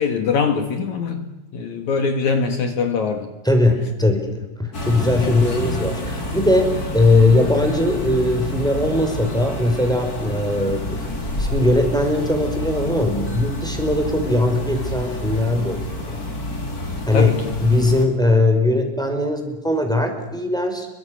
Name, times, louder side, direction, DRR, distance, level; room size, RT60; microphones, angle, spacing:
voice 1, 0.0-3.3 5.2-5.4 17.1-17.5, left 5 dB, 60° left, 2.9 m, -23 dB
voice 2, 3.4-11.0 11.4-15.8 17.1-20.9, left 2 dB, ahead, 4.6 m, -19 dB
sound 1, 4.7-18.1, left 1 dB, 25° left, 3.6 m, -28 dB
29.5 x 23.5 x 6.4 m
omnidirectional pair, 4.1 m